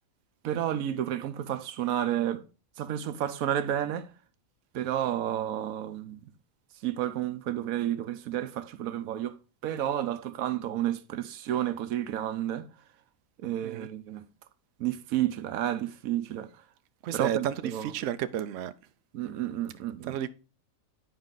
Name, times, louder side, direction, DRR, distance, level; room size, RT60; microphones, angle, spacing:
voice 1, 0.4-2.4 2.8-4.1 4.7-6.2 6.8-9.4 9.6-12.7 13.4-14.2 14.8-16.5 17.1-17.9 19.1-20.2, right 11 dB, 85° right, 1.2 m, -31 dB
voice 2, 17.0-18.7 20.0-20.3, right 10 dB, 70° right, 0.9 m, -32 dB
9.8 x 4.8 x 3.9 m
omnidirectional pair, 1.4 m